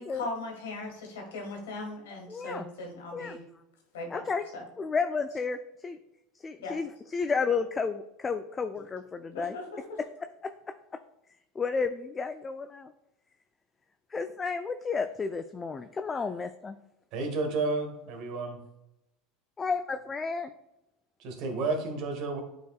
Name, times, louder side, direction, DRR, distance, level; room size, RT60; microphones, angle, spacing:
voice 1, 0.0-3.4 3.9-4.2 4.5-4.6 6.6-6.8 9.3-9.6 9.9-10.0, left 2 dB, 85° left, 1 dB, 1.7 m, -38 dB
voice 2, 2.3-2.7 3.1-3.4 4.1-4.4 4.8-6.0 6.4-9.6 10.0-10.1 11.6-12.9 14.1-16.8 19.6-20.5, left 5 dB, 25° left, 8 dB, 0.4 m, -32 dB
voice 3, 17.1-18.6 21.2-22.4, right 3 dB, 55° right, 4 dB, 1.5 m, -31 dB
9.0 x 4.7 x 2.4 m, 0.89 s
hypercardioid pair, 90°, 0 cm